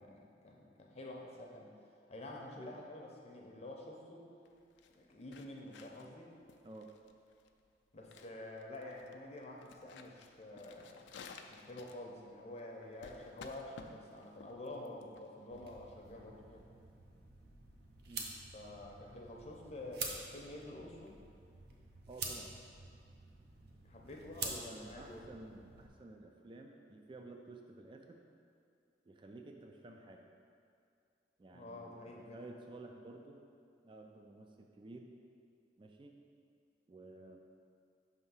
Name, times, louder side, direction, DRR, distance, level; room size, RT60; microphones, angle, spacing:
voice 1, 0.0-1.7 2.1-4.3 4.9-6.3 7.9-11.1 11.5-16.6 18.5-21.2 23.8-25.3 31.5-32.4, left 1 dB, 35° left, -1 dB, 0.6 m, -48 dB
sound 1, 4.5-16.1, left 5 dB, 80° left, 0.4 m, -56 dB
sound 2, 15.5-25.9, right 4 dB, 60° right, 0.7 m, -48 dB
voice 2, 22.1-22.5 24.7-28.2 29.1-30.3 31.4-33.4 33.8-35.1 35.8-36.2 36.9-37.4, right 2 dB, 30° right, 3 dB, 0.3 m, -53 dB
5.6 x 3.4 x 5.6 m, 2.4 s
head